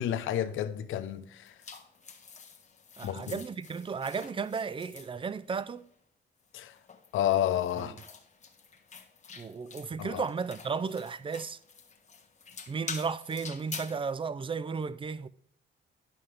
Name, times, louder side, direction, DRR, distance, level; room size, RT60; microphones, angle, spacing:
voice 1, 0.0-1.5 3.0-3.4 6.5-6.7 7.1-8.0 10.0-10.2, left 11 dB, 85° left, 0.8 m, -30 dB
sound 1, 1.4-5.8 6.5-14.0, left 5 dB, 35° left, 1.3 m, -47 dB
voice 2, 3.0-5.9 7.8-7.9 9.3-11.6 12.7-15.3, right 5 dB, 25° right, 0.4 m, -34 dB
11.0 x 5.6 x 3.4 m
cardioid pair, 90°, 20 cm